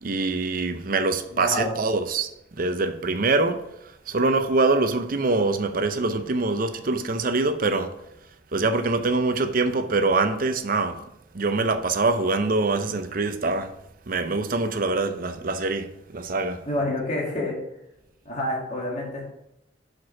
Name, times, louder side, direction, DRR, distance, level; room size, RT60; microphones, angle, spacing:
voice 1, 0.0-3.6 4.1-7.9 8.5-11.0 11.3-13.7 14.1-16.6, right 3 dB, 50° right, 0.6 m, -24 dB
voice 2, 1.3-1.7 16.7-17.6 18.3-19.2, left 1 dB, 45° left, 2.1 m, -28 dB
6.1 x 5.0 x 5.8 m
head